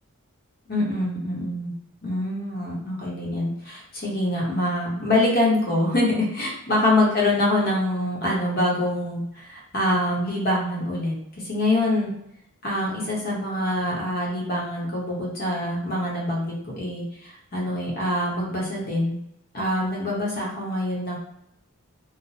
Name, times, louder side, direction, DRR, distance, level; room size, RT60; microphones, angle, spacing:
voice 1, 0.7-1.7 2.0-11.1 11.4-12.1 12.6-19.1 19.5-21.2, left 1 dB, 40° left, -4 dB, 0.9 m, -25 dB
3.2 x 2.1 x 2.7 m, 0.78 s
head